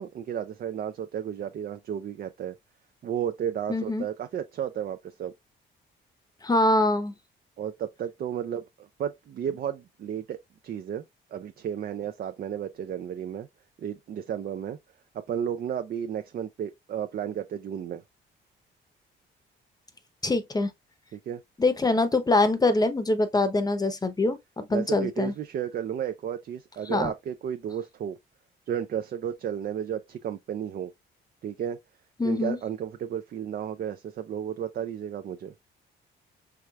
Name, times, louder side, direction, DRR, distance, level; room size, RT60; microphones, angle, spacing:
voice 1, 0.0-2.5 3.0-5.3 7.6-10.4 10.6-11.0 11.3-13.5 13.8-14.8 15.3-18.0 21.1-21.4 24.7-28.2 28.7-30.9 31.4-31.8 32.2-35.5, right 9 dB, 50° right, 0.4 m, -33 dB
voice 2, 3.7-4.0 6.4-7.1 20.2-20.7 21.6-25.3 26.9-27.1 32.2-32.6, left 2 dB, 20° left, 0.7 m, -24 dB
4.7 x 3.3 x 2.3 m
cardioid pair, 90°, 20 cm